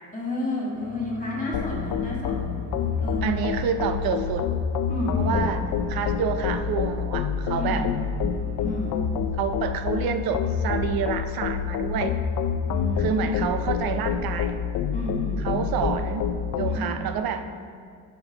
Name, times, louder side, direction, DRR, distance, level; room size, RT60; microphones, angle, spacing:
voice 1, 0.1-2.6 3.0-3.3 4.9-5.7 7.5-7.9 8.6-9.0 12.6-13.2 14.9-15.9 16.6-17.0 17.5-17.6, left 2 dB, 20° left, -4 dB, 1.7 m, -31 dB
sound 1, 0.7-10.9, right 1 dB, 5° left, 1.7 m, -43 dB
sound 2, 1.5-16.8, left 7 dB, 60° left, 0.5 m, -27 dB
voice 2, 3.2-4.5 5.2-5.6 5.9-7.8 9.4-12.2 13.0-14.6 15.4-16.3 16.6-17.4, right 7 dB, 75° right, 9 dB, 0.6 m, -28 dB
11.5 x 4.6 x 2.9 m, 2.3 s
cardioid pair, 145°, 36 cm